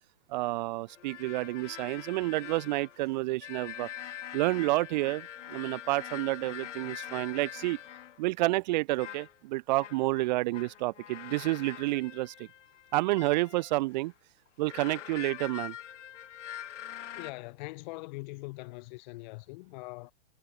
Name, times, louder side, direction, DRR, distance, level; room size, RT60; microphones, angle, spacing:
voice 1, 0.3-3.9 4.3-7.8 8.2-12.5 12.9-14.1 14.6-15.7, right 20 dB, 35° right, 0.8 m, -29 dB
sound 1, 0.9-8.2 9.0-9.4 9.8-13.9 14.5-17.3, left 11 dB, 70° left, 4.8 m, -44 dB
voice 2, 17.1-20.1, left 24 dB, 35° left, 1.3 m, -42 dB
hypercardioid pair, 150°, 37 cm